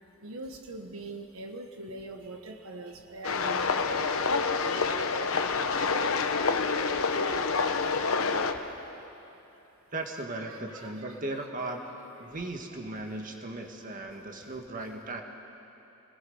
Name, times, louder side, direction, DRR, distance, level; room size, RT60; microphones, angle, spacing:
voice 1, 0.2-4.1 10.5-11.2, right 2 dB, 90° right, 4 dB, 1.3 m, -42 dB
sound 1, 3.2-8.5, left 4 dB, 90° left, 1.1 m, -27 dB
voice 2, 9.9-11.8 12.2-15.2, right 2 dB, 40° right, 2 dB, 1.8 m, -37 dB
27.5 x 20.5 x 5.6 m, 2.9 s
head